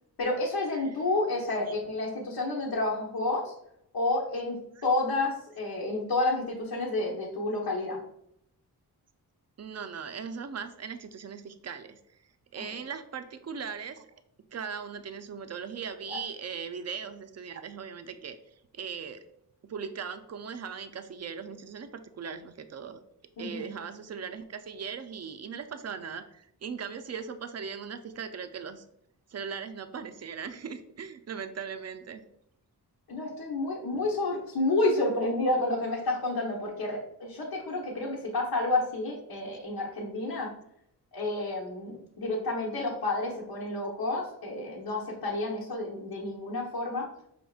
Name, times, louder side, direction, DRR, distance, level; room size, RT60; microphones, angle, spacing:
voice 1, 0.2-3.5 3.9-4.6 4.8-8.0 12.7-12.8 16.1-16.2 23.4-23.7 33.1-40.5 41.1-47.1, left 2 dB, 75° left, -6 dB, 1.0 m, -30 dB
voice 2, 9.6-12.2 12.5-14.1 14.5-19.2 19.6-23.0 23.4-28.8 29.3-32.2, right 6 dB, 40° right, 9 dB, 0.5 m, -39 dB
5.1 x 3.4 x 2.4 m, 0.74 s
cardioid pair, 60°, 39 cm